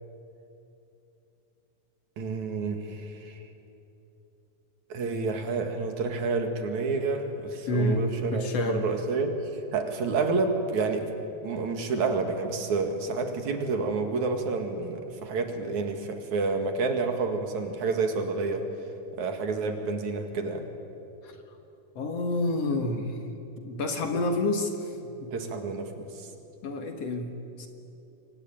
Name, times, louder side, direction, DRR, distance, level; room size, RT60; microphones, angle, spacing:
voice 1, 2.2-3.4 4.9-9.4 9.7-11.1 11.4-18.6 19.2-20.7 25.3-26.3, right 4 dB, 65° right, 5 dB, 3.3 m, -29 dB
voice 2, 7.7-8.1 8.3-8.8 21.2-21.4 22.0-23.2 23.6-25.0 25.2-25.3 26.6-27.3 27.6-27.7, left 2 dB, 55° left, 5 dB, 2.6 m, -28 dB
28.0 x 23.5 x 9.0 m, 2.9 s
omnidirectional pair, 3.7 m